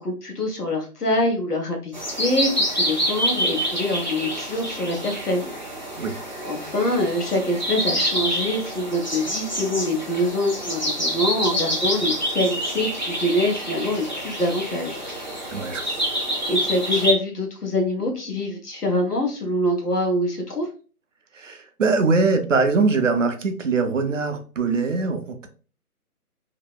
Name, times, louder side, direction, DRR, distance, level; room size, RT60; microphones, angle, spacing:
voice 1, 0.0-5.5 6.4-15.0 16.5-20.7, left 1 dB, 90° left, 2 dB, 1.1 m, -25 dB
sound 1, 1.9-17.1, equal, 35° left, 0.4 m, -27 dB
voice 2, 15.5-16.3 21.3-25.5, right 4 dB, 55° right, 7 dB, 0.5 m, -22 dB
2.7 x 2.0 x 2.2 m, 0.37 s
figure-of-eight pair, 145°, 46 cm